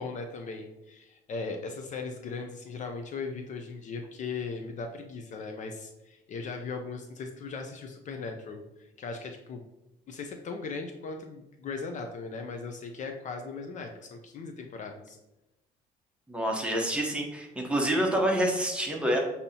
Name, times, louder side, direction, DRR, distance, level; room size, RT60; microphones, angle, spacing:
voice 1, 0.0-9.6 10.1-15.2, left 4 dB, 45° left, 5 dB, 0.5 m, -38 dB
voice 2, 16.3-19.2, right 1 dB, 5° right, 0 dB, 0.9 m, -27 dB
6.9 x 2.8 x 2.7 m, 0.95 s
cardioid pair, 110°, 17 cm